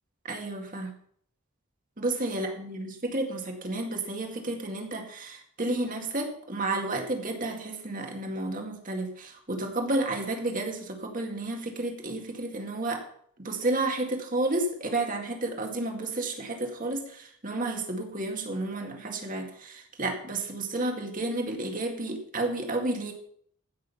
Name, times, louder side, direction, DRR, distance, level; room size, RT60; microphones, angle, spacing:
voice 1, 0.2-0.9 2.0-13.0 13.4-23.1, right 2 dB, 40° right, 3 dB, 2.0 m, -31 dB
15.5 x 6.5 x 5.6 m, 0.64 s
head